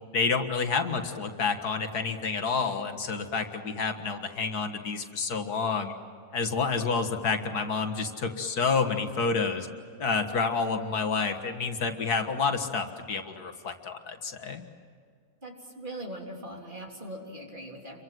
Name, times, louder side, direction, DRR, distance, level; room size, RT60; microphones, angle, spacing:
voice 1, 0.1-5.9 6.3-9.7 10.0-14.6, left 5 dB, 80° left, 5 dB, 2.2 m, -29 dB
voice 2, 15.4-18.0, right 1 dB, 30° right, 0 dB, 3.6 m, -41 dB
29.0 x 24.0 x 7.7 m, 2.2 s
omnidirectional pair, 1.6 m